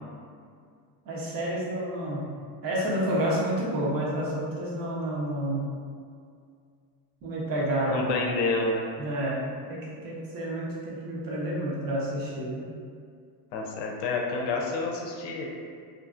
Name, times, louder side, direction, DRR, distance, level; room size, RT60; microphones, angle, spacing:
voice 1, 1.1-2.3 2.6-5.7 7.2-8.1 9.0-12.7, right 1 dB, 45° right, -5 dB, 0.9 m, -29 dB
voice 2, 7.9-8.9 13.5-15.5, left 3 dB, 60° left, 0 dB, 0.6 m, -29 dB
2.6 x 2.6 x 2.4 m, 2.2 s
supercardioid pair, 110°, 48 cm